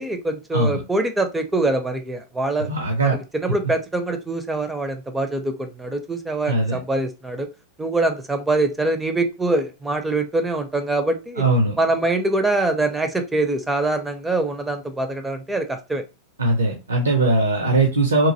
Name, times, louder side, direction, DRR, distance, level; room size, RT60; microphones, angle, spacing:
voice 1, 0.0-2.7 3.0-7.5 7.8-11.4 11.8-16.0, right 2 dB, 10° right, 7 dB, 0.4 m, -24 dB
voice 2, 2.7-3.2 6.5-6.8 11.4-11.7 16.4-18.3, right 2 dB, 75° right, 2 dB, 0.5 m, -20 dB
3.0 x 2.4 x 2.6 m, 0.30 s
figure-of-eight pair, 90°, 0 cm